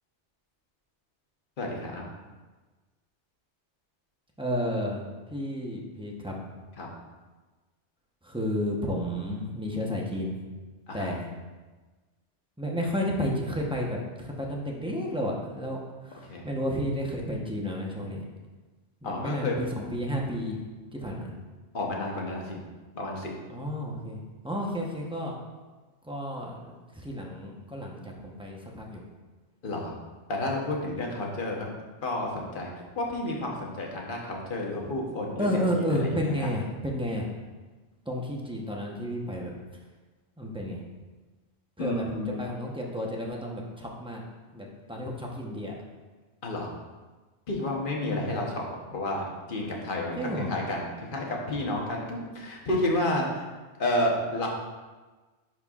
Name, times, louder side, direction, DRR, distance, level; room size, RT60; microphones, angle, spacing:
voice 1, 1.6-2.1 6.8-6.9 10.9-11.1 16.3-16.5 19.0-19.5 21.7-22.6 22.9-23.3 29.6-29.9 30.3-31.7 32.0-32.7 32.9-35.6 35.9-36.5 41.8-42.5 46.4-46.7 47.5-53.4 53.8-54.5, left 1 dB, 50° left, -1 dB, 1.2 m, -31 dB
voice 2, 4.4-5.0 5.3-6.3 8.2-10.4 10.9-11.3 12.6-15.8 16.0-18.2 19.0-20.6 20.9-21.3 23.5-25.3 26.0-29.0 35.4-37.3 38.1-39.5 40.4-40.8 41.8-44.2 44.5-45.7 48.0-48.3 50.2-50.5, equal, 5° right, -2 dB, 0.8 m, -32 dB
11.0 x 4.4 x 2.4 m, 1.3 s
omnidirectional pair, 1.2 m